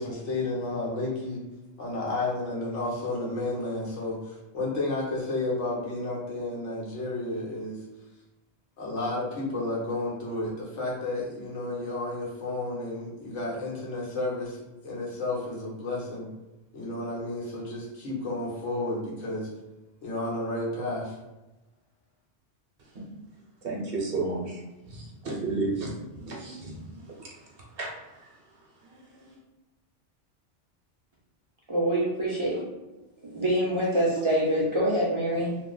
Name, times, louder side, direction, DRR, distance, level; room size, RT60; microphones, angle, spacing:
voice 1, 0.0-1.4 1.8-7.8 8.8-16.3 16.7-19.5 20.0-21.1, left 2 dB, 85° left, -4 dB, 1.3 m, -32 dB
voice 2, 23.6-24.6 24.9-28.4 28.9-29.4, right 3 dB, 60° right, -2 dB, 0.9 m, -34 dB
voice 3, 31.7-32.6 33.2-35.6, right 1 dB, 35° right, -6 dB, 0.6 m, -25 dB
2.8 x 2.0 x 3.7 m, 1.0 s
omnidirectional pair, 1.2 m